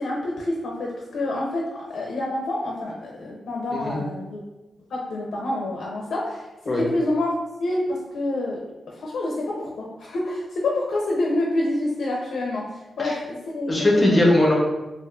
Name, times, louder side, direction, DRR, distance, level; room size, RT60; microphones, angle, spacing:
voice 1, 0.0-1.6 1.9-4.4 4.9-6.5 6.9-7.3 7.6-8.6 9.0-12.6 13.0-13.7 14.1-14.3, left 2 dB, 80° left, -2 dB, 0.5 m, -27 dB
voice 2, 13.7-14.5, left 1 dB, 20° left, -2 dB, 0.7 m, -19 dB
3.6 x 2.5 x 2.3 m, 1.1 s
wide cardioid pair, 135°, 0 cm